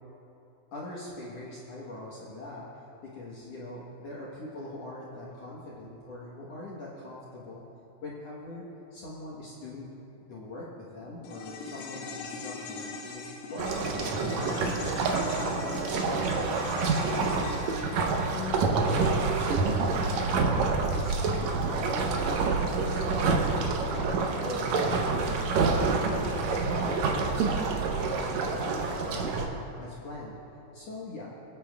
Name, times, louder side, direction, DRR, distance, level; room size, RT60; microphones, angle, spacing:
voice 1, 0.7-2.7 3.0-7.6 8.0-9.9 10.3-10.7 10.9-16.1 16.5-17.9 18.3-20.2 20.6-22.4 22.7-23.6 23.9-24.8 25.1-29.4 29.8-30.4 30.7-31.3, left 2 dB, 60° left, -6 dB, 1.7 m, -42 dB
sound 1, 11.2-19.7 20.0-20.1, left 4 dB, 75° left, 2.8 m, -41 dB
sound 2, 13.6-29.5, right 4 dB, 90° right, 1.6 m, -27 dB
24.5 x 8.6 x 2.3 m, 2.8 s
omnidirectional pair, 4.4 m